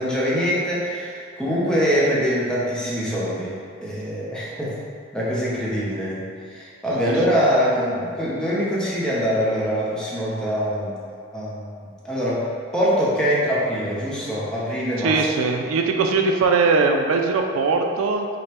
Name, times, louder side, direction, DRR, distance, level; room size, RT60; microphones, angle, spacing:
voice 1, 0.0-4.7 5.1-10.9 11.3-11.7 12.0-12.4 12.7-15.2, equal, 5° left, -7 dB, 0.6 m, -23 dB
voice 2, 15.0-18.3, right 4 dB, 90° right, 3 dB, 0.3 m, -20 dB
4.9 x 2.1 x 2.9 m, 2.2 s
head